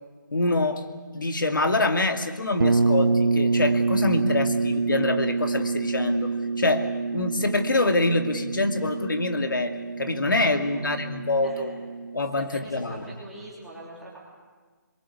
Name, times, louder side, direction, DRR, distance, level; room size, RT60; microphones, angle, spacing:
voice 1, 0.3-0.8 1.1-11.7 12.1-13.0, left 2 dB, 80° left, 6 dB, 2.4 m, -25 dB
sound 1, 2.6-12.3, right 4 dB, 90° right, 1.2 m, -26 dB
voice 2, 10.5-10.9 11.4-11.8 12.3-14.2, right 2 dB, 5° right, -6 dB, 3.0 m, -43 dB
24.5 x 22.0 x 8.6 m, 1.5 s
hypercardioid pair, 175°, 11 cm